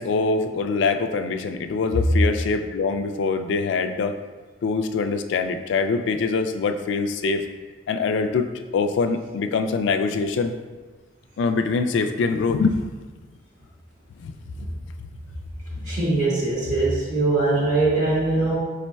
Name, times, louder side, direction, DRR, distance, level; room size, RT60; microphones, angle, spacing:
voice 1, 0.0-4.1 4.6-7.4 7.9-10.5 11.4-12.9 14.2-14.3 14.6-14.7, left 4 dB, 80° left, 7 dB, 0.3 m, -24 dB
voice 2, 15.9-18.5, right 2 dB, 45° right, -6 dB, 1.4 m, -21 dB
5.1 x 4.1 x 2.2 m, 1.3 s
head